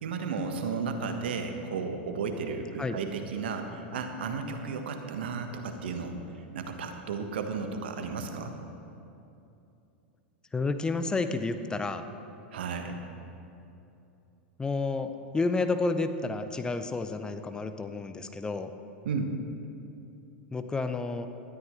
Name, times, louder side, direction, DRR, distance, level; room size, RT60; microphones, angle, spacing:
voice 1, 0.0-6.2 6.5-8.6 12.5-13.0 19.0-19.3, right 5 dB, 70° right, 5 dB, 1.4 m, -33 dB
voice 2, 10.5-12.0 14.6-18.7 20.5-21.3, left 3 dB, 15° left, 9 dB, 0.8 m, -30 dB
19.5 x 13.0 x 3.3 m, 2.7 s
hypercardioid pair, 95°, 6 cm